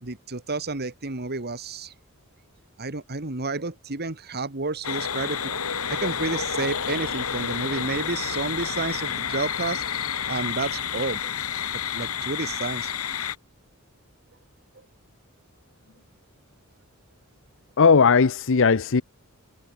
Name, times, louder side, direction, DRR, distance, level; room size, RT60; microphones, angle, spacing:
voice 1, 0.0-1.9 2.8-9.8 10.3-11.3 11.9-12.9, right 3 dB, 50° right, 2.1 m, -30 dB
sound 1, 4.8-13.4, left 7 dB, 85° left, 2.5 m, -29 dB
voice 2, 17.8-19.0, left 5 dB, 60° left, 0.7 m, -17 dB
head